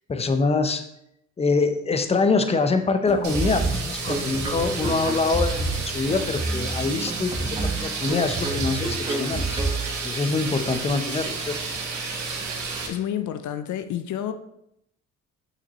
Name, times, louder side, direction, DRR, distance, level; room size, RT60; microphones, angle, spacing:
voice 1, 0.1-0.8 1.4-9.6 10.0-11.6, left 4 dB, 20° left, 8 dB, 0.7 m, -24 dB
sound 1, 3.1-10.7, right 2 dB, 15° right, 1.2 m, -29 dB
sound 2, 3.2-12.9, right 4 dB, 70° right, 1.7 m, -31 dB
voice 2, 12.9-14.3, left 10 dB, 75° left, 10 dB, 0.5 m, -29 dB
6.8 x 5.8 x 2.9 m, 0.78 s
cardioid pair, 90°, 30 cm